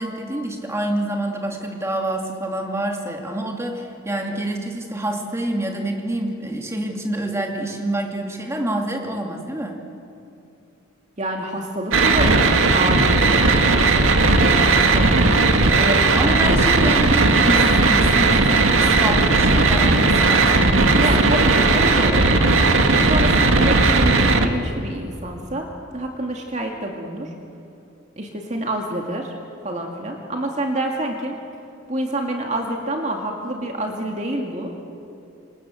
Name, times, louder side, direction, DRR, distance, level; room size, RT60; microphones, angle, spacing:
voice 1, 0.0-9.8 16.1-21.5, right 1 dB, 15° right, 1 dB, 2.8 m, -27 dB
voice 2, 11.2-15.1 15.8-16.6 21.0-22.4 23.1-25.7 25.9-27.3 28.2-29.3 29.6-31.3 31.9-34.7, right 1 dB, 35° right, 1 dB, 2.4 m, -27 dB
sound 1, 11.9-24.5, right 3 dB, 80° right, 1.9 m, -16 dB
27.5 x 27.0 x 7.9 m, 2.7 s
head